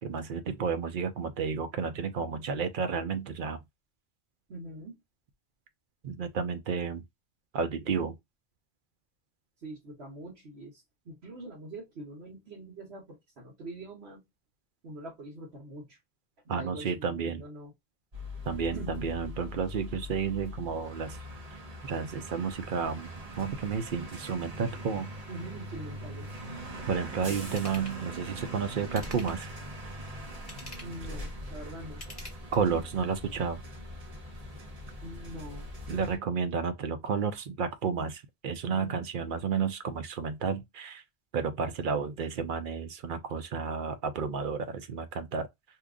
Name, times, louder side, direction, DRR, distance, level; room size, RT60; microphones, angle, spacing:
voice 1, 0.0-3.6 6.0-7.0 7.5-8.2 16.5-17.4 18.5-21.2 21.5-23.1 23.4-25.1 26.9-29.5 32.5-33.6 35.9-41.0 41.3-45.5, right 6 dB, 60° right, 0.7 m, -31 dB
voice 2, 4.5-5.0 9.6-14.2 14.8-16.0 16.4-17.7 18.7-19.0 25.3-26.4 27.3-27.6 30.8-32.0 35.0-35.7 36.2-36.3 38.6-39.0, right 1 dB, 80° right, 1.3 m, -44 dB
sound 1, 18.1-36.2, equal, 40° right, 1.0 m, -41 dB
Ratchet pawl / Tools, 27.5-28.0 28.8-29.5 30.3-31.0 31.9-32.8 33.3-33.4, left 1 dB, 35° left, 1.3 m, -47 dB
2.9 x 2.4 x 3.5 m
omnidirectional pair, 1.1 m